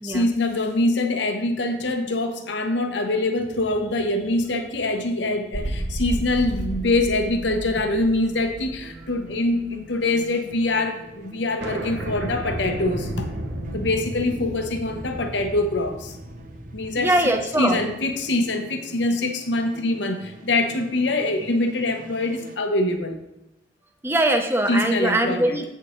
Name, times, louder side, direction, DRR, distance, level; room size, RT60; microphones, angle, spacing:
voice 1, 0.0-13.3 13.7-16.2 16.7-17.1 17.6-23.2 24.7-25.6, left 2 dB, 80° left, 5 dB, 0.9 m, -24 dB
sound 1, 3.4-6.0 6.5-6.6 8.1-8.4 8.7-10.1 10.4-10.5 10.7-10.8 11.1-11.2 11.6-18.3, right 1 dB, 70° right, 1.1 m, -35 dB
sound 2, 5.5-22.6, right 1 dB, 45° right, 0.7 m, -38 dB
voice 2, 17.0-17.8 24.0-25.6, right 1 dB, 15° right, 5 dB, 0.7 m, -22 dB
8.2 x 6.8 x 3.1 m, 0.92 s
head